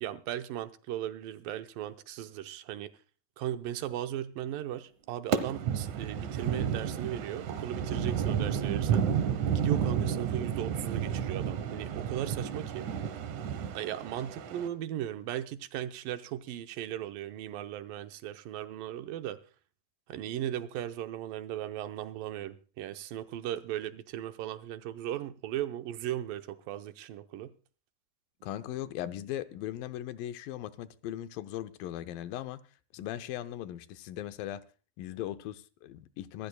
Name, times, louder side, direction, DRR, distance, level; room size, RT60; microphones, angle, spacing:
voice 1, 0.0-2.9 3.4-9.1 9.5-12.9 13.7-19.4 20.1-27.5, right 12 dB, 85° right, 2.5 m, -37 dB
sound 1, 5.3-14.7, right 8 dB, 70° right, 2.4 m, -31 dB
voice 2, 28.4-32.6 32.9-34.6 35.0-36.5, left 12 dB, 90° left, 2.5 m, -38 dB
25.5 x 13.5 x 2.3 m
omnidirectional pair, 3.9 m